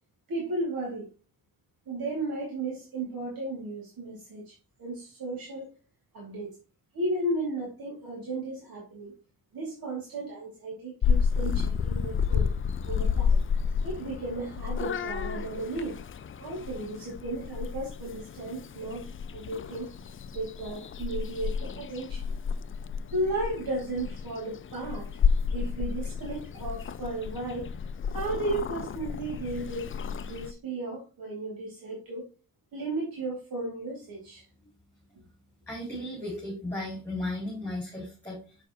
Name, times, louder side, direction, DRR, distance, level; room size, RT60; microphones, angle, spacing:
voice 1, 0.3-1.0 1.9-4.5 4.8-5.7 6.1-6.5 6.9-9.1 9.5-12.5 12.9-13.4 13.8-16.0 16.4-19.9 20.3-22.3 23.1-25.1 25.5-27.7 28.1-29.9 30.2-32.3 32.7-34.4, right 2 dB, 70° right, -5 dB, 2.6 m, -34 dB
Purr / Meow, 11.0-30.5, left 6 dB, 35° left, 0.4 m, -31 dB
voice 2, 35.7-38.6, left 1 dB, 5° left, -4 dB, 3.1 m, -35 dB
7.0 x 6.8 x 3.0 m, 0.33 s
wide cardioid pair, 135°, 36 cm